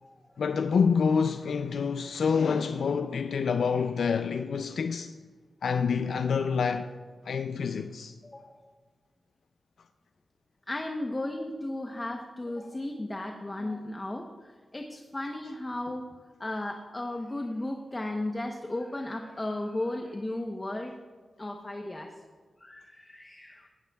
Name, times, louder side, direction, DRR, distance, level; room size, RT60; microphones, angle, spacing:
voice 1, 0.4-5.1 5.6-6.9 7.3-8.1, left 6 dB, 85° left, 0.4 m, -27 dB
voice 2, 8.2-8.5 10.7-16.0 16.4-21.0 21.4-22.3 22.6-23.7, left 1 dB, 25° left, 0.9 m, -35 dB
17.0 x 14.5 x 2.3 m
wide cardioid pair, 80°, 0 cm